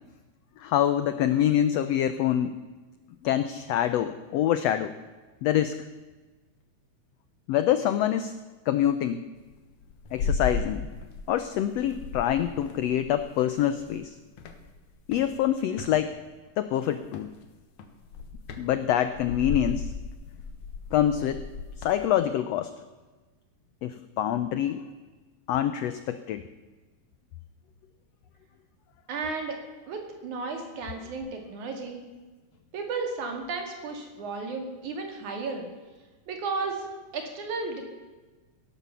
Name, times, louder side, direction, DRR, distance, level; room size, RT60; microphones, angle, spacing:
voice 1, 0.6-2.5 3.2-4.9 5.4-5.7 7.5-8.3 8.7-9.2 10.1-10.8 11.3-14.1 15.1-16.1 16.6-17.3 18.6-19.9 20.9-21.4 21.8-22.7 23.8-24.8 25.5-26.4, left 11 dB, 85° left, 11 dB, 1.4 m, -25 dB
sound 1, 9.4-11.4 11.7-14.0 14.4-15.9 17.0-17.4 17.8-22.0, left 4 dB, 65° left, 2.6 m, -35 dB
voice 2, 29.1-29.6 29.9-32.0 32.7-35.7 36.3-37.8, right 4 dB, 65° right, 3 dB, 3.6 m, -33 dB
17.5 x 11.5 x 7.0 m, 1.3 s
omnidirectional pair, 3.7 m